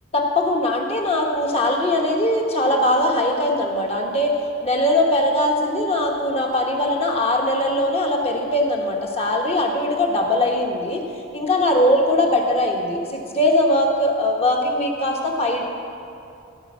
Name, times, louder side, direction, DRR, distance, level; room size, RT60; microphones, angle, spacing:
voice 1, 0.1-11.0 11.3-15.6, left 1 dB, 25° left, 0 dB, 1.2 m, -21 dB
15.5 x 5.2 x 7.4 m, 2.6 s
head